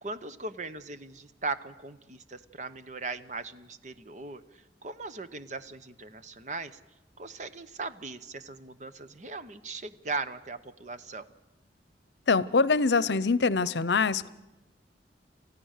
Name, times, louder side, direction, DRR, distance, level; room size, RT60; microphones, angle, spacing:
voice 1, 0.0-6.8 7.2-11.3, right 3 dB, 45° right, 12 dB, 0.9 m, -39 dB
voice 2, 12.3-14.3, left 4 dB, 80° left, 18 dB, 0.7 m, -24 dB
28.5 x 15.0 x 6.5 m, 1.1 s
head